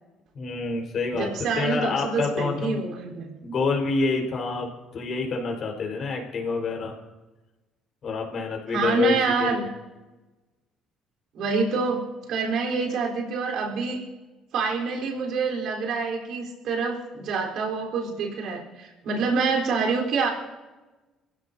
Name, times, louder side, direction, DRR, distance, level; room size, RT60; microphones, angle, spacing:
voice 1, 0.3-2.8 3.4-6.9 8.0-9.1 9.4-9.7, left 4 dB, 55° left, 1 dB, 5.0 m, -27 dB
voice 2, 1.1-3.3 8.7-9.7 11.3-14.0 14.5-20.3, right 4 dB, 70° right, 0 dB, 4.3 m, -26 dB
24.5 x 15.5 x 2.9 m, 1.1 s
supercardioid pair, 80°, 0 cm